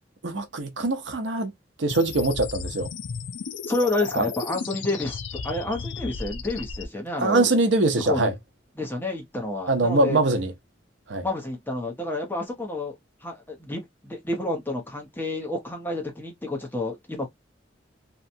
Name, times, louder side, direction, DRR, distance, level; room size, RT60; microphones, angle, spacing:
voice 1, 0.2-1.5 1.8-2.9 4.2-4.3 7.2-8.3 9.7-10.5 11.1-11.2, right 2 dB, 85° right, 0.7 m, -23 dB
sound 1, 1.9-6.8, left 5 dB, 90° left, 0.5 m, -34 dB
voice 2, 3.7-7.5 8.0-8.3 8.8-10.2 11.2-13.0 13.2-17.3, left 2 dB, 10° left, 1.0 m, -29 dB
2.9 x 2.4 x 2.6 m
head